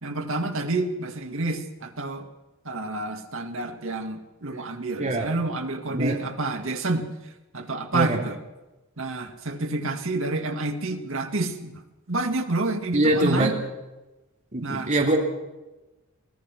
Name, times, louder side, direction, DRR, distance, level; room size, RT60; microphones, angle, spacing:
voice 1, 0.0-2.3 2.7-7.1 7.5-8.4 9.0-11.8 12.1-13.6 14.6-14.9, right 2 dB, 65° right, 5 dB, 2.1 m, -29 dB
voice 2, 12.9-13.5 14.5-15.2, right 1 dB, 35° right, 0 dB, 3.1 m, -23 dB
24.0 x 18.0 x 6.1 m, 1.1 s
head